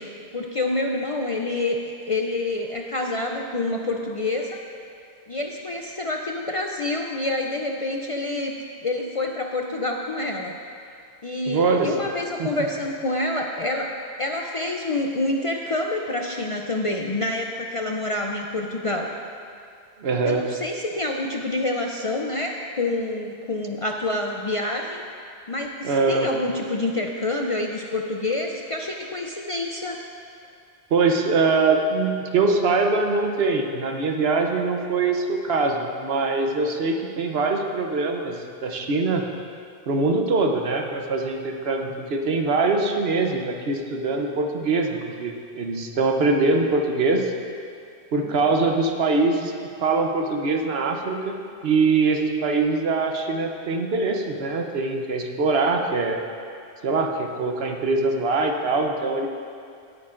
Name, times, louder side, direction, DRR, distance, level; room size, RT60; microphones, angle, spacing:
voice 1, 0.0-4.6 5.3-8.5 8.8-10.5 11.2-19.1 20.2-25.0 25.5-30.0 48.2-48.3, left 2 dB, 45° left, 1 dB, 0.4 m, -27 dB
voice 2, 11.5-12.1 12.4-12.5 20.0-20.5 25.8-26.3 30.9-38.4 38.6-39.3 39.9-47.3 48.1-49.5 49.8-51.4 51.6-56.2 56.8-59.3, right 3 dB, 70° right, 3 dB, 1.0 m, -23 dB
17.5 x 8.7 x 2.5 m, 2.4 s
omnidirectional pair, 1.1 m